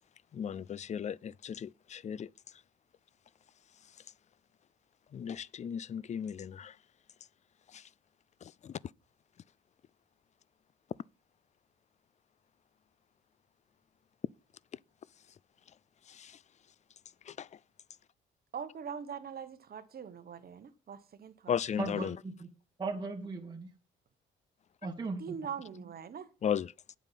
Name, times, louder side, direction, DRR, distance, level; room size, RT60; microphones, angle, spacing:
voice 1, 0.3-2.3 5.1-6.7 7.7-7.8 8.6-8.7 16.1-16.3 17.3-17.5 21.5-22.2 26.4-26.7, left 8 dB, 35° left, 0.4 m, -35 dB
voice 2, 18.5-21.5 25.2-26.3, right 7 dB, 50° right, 1.2 m, -42 dB
voice 3, 21.8-22.5 22.8-23.7 24.8-25.4, right 3 dB, 20° right, 2.4 m, -37 dB
8.9 x 7.2 x 5.8 m
cardioid pair, 90°, 20 cm